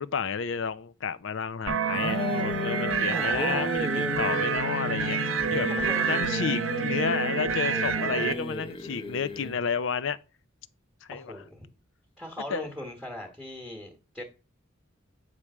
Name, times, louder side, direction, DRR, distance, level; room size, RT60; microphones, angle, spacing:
voice 1, 0.0-5.7 6.1-10.2 11.0-11.3 12.5-12.7, left 6 dB, 65° left, 0.5 m, -31 dB
sound 1, 1.7-8.3, right 5 dB, 75° right, 0.8 m, -28 dB
sound 2, 1.9-9.6, left 1 dB, 25° left, 0.9 m, -35 dB
voice 2, 3.1-3.8 5.5-6.1 11.1-11.7 12.2-14.2, left 1 dB, ahead, 1.2 m, -39 dB
8.6 x 3.3 x 6.0 m
head